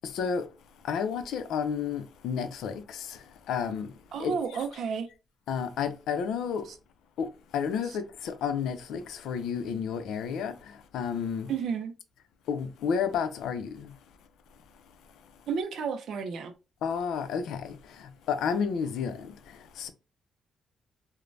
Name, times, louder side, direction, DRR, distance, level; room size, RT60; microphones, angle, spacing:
voice 1, 0.1-0.4 0.8-3.2 3.5-3.9 4.2-4.3 5.5-6.6 7.2-7.3 7.5-10.5 10.9-11.5 12.5-13.9 16.8-17.7 18.3-19.3 19.8-19.9, left 6 dB, 85° left, 0.4 m, -31 dB
voice 2, 4.1-5.1 6.7-6.8 7.8-8.0 11.5-11.9 15.5-16.5, right 6 dB, 70° right, 0.4 m, -32 dB
3.1 x 2.1 x 2.5 m
cardioid pair, 110°, 0 cm